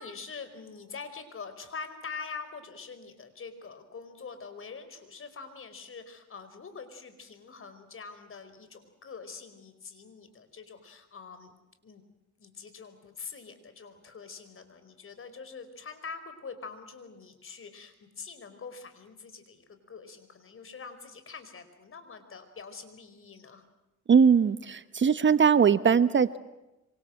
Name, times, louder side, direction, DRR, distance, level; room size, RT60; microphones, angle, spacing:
voice 1, 0.0-11.5 11.8-12.0 12.4-23.6, left 5 dB, 45° left, 10 dB, 5.0 m, -44 dB
voice 2, 24.1-26.4, right 6 dB, 40° right, 14 dB, 1.0 m, -21 dB
26.0 x 26.0 x 7.8 m, 0.97 s
cardioid pair, 90°, 30 cm